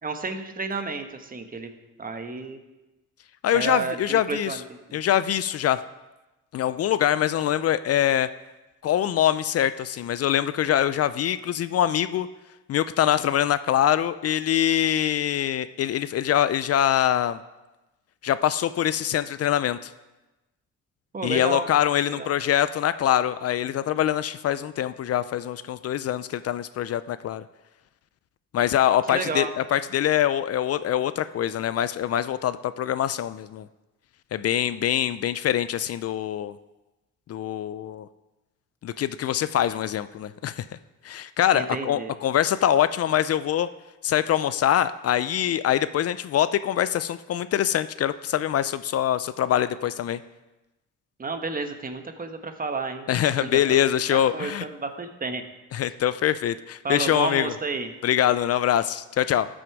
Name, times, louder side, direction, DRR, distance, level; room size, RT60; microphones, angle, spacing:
voice 1, 0.0-1.7 2.0-2.6 3.5-4.6 4.9-5.0 21.1-21.7 22.1-22.3 29.1-29.5 41.5-42.1 51.2-53.8 54.1-55.4 56.8-57.9, right 4 dB, 30° right, 7 dB, 1.1 m, -31 dB
voice 2, 3.4-4.6 4.9-5.8 6.5-8.3 8.8-12.3 12.7-17.4 18.2-19.9 21.2-27.4 28.5-33.7 34.3-36.6 37.3-38.1 38.8-40.6 41.0-43.7 44.0-50.2 53.1-54.6 55.7-57.5 58.0-59.5, left 11 dB, 55° left, 14 dB, 0.4 m, -24 dB
13.0 x 6.3 x 4.7 m, 1.1 s
cardioid pair, 90°, 30 cm